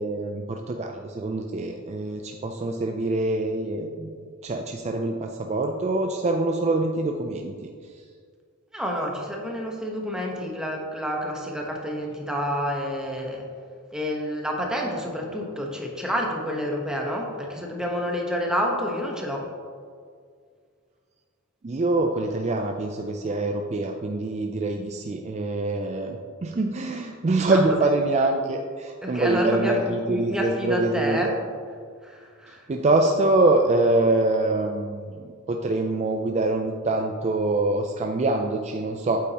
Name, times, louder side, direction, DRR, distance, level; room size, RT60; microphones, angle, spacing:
voice 1, 0.0-4.1 4.4-7.7 21.6-31.4 32.7-35.1 35.5-39.2, right 2 dB, 30° right, 3 dB, 0.4 m, -24 dB
voice 2, 8.7-13.4 13.9-19.5 27.5-27.8 29.0-31.3 32.0-32.7, equal, 5° right, -1 dB, 1.1 m, -29 dB
8.5 x 8.3 x 2.9 m, 2.1 s
head